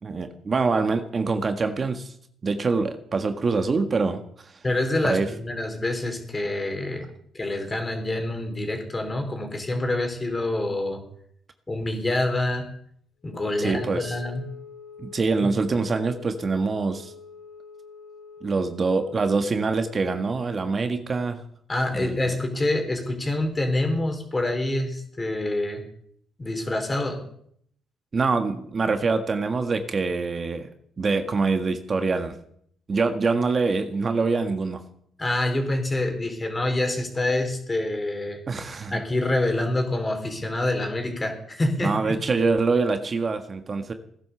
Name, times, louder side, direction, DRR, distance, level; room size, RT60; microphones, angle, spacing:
voice 1, 0.0-2.1 2.4-4.6 5.1-5.3 13.6-14.1 15.0-17.1 18.4-21.4 22.0-22.4 28.1-30.7 31.0-32.4 32.9-34.8 38.5-39.0 41.8-43.9, right 4 dB, 40° right, 7 dB, 1.6 m, -25 dB
voice 2, 4.6-7.0 7.3-11.0 11.7-12.7 13.2-14.4 15.4-15.5 21.7-25.8 26.4-27.2 35.2-38.4 38.9-42.2, left 1 dB, 25° left, 4 dB, 4.3 m, -26 dB
Wind instrument woodwind instrument, 13.3-20.4, left 6 dB, 55° left, 1.5 m, -45 dB
17.0 x 11.0 x 6.9 m, 0.66 s
cardioid pair, 85°, 0 cm